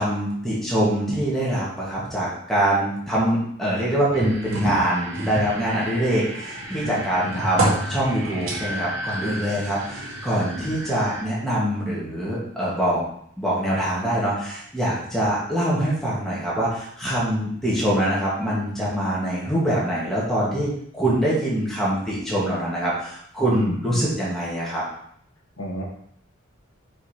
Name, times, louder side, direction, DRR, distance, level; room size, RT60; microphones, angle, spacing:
voice 1, 0.0-13.0 13.4-24.8, right 1 dB, ahead, -7 dB, 2.1 m, -24 dB
sound 1, 4.1-11.2, right 1 dB, 55° right, 1.4 m, -36 dB
sound 2, 4.2-6.2 6.6-8.6 9.6-10.5 11.2-11.3, right 1 dB, 80° right, 2.2 m, -28 dB
voice 2, 6.8-7.4 9.2-9.7 23.5-24.1 25.6-25.8, left 1 dB, 80° left, -2 dB, 1.9 m, -33 dB
5.5 x 4.9 x 5.1 m, 0.67 s
head